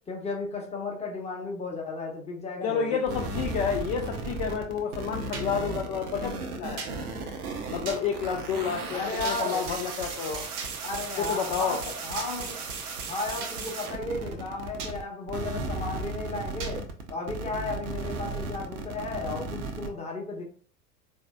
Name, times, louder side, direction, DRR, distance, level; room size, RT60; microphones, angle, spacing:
voice 1, 0.1-3.2 8.9-9.6 10.8-12.7 13.1-20.4, left 3 dB, 15° left, 1.0 m, -34 dB
voice 2, 2.6-6.9 7.7-10.5 11.2-11.8, left 6 dB, 45° left, 0.5 m, -30 dB
sound 1, 3.1-15.0 15.3-19.9, right 3 dB, 75° right, 0.7 m, -35 dB
sound 2, 5.3-5.5 6.8-6.9 7.9-8.0 9.2-9.4 10.6-10.7 12.2-12.3 13.4-13.6 14.8-15.0 16.6-16.8, right 5 dB, 45° right, 0.8 m, -37 dB
3.9 x 2.7 x 2.2 m
figure-of-eight pair, 75°, 44 cm